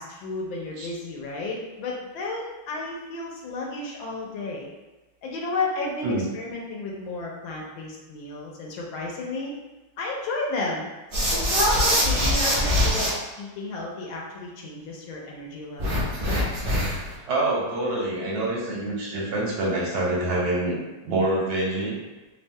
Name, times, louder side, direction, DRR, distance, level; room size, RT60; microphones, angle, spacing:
voice 1, 0.0-4.7 5.2-9.5 10.0-10.9 11.5-16.3, left 2 dB, 75° left, -2 dB, 1.3 m, -32 dB
sound 1, 11.1-13.1 15.8-17.1, equal, 45° right, 0.7 m, -23 dB
voice 2, 17.3-20.8 21.0-22.0, right 2 dB, 75° right, -4 dB, 1.4 m, -26 dB
3.4 x 2.1 x 2.6 m, 1.1 s
omnidirectional pair, 2.3 m